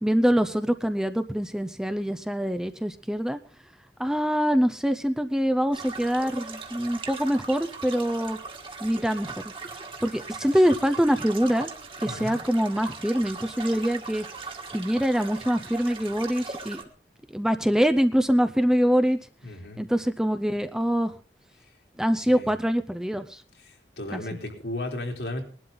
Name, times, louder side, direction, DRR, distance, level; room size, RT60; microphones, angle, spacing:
voice 1, 0.0-3.4 4.0-8.4 8.8-9.3 10.0-11.7 12.0-14.3 14.7-16.8 17.3-19.2 19.8-21.1 22.0-23.4 24.1-24.2, equal, 5° right, 9 dB, 0.6 m, -24 dB
sound 1, 5.7-16.8, right 4 dB, 30° right, 1.7 m, -39 dB
voice 2, 19.4-19.8 22.3-22.5 23.7-25.4, left 1 dB, 80° left, 2 dB, 3.5 m, -34 dB
20.0 x 12.0 x 3.9 m, 0.38 s
head